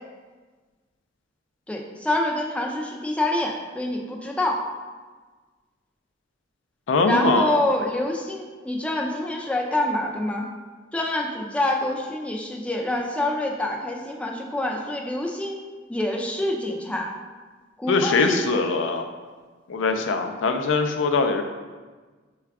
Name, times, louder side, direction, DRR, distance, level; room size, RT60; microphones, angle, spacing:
voice 1, 1.7-4.6 7.1-10.5 10.9-15.6 15.9-17.1 17.8-18.6, left 1 dB, 5° left, 0 dB, 0.4 m, -26 dB
voice 2, 6.9-7.6 17.9-19.0 19.7-21.4, left 3 dB, 80° left, 5 dB, 0.4 m, -22 dB
6.6 x 2.3 x 3.5 m, 1.4 s
head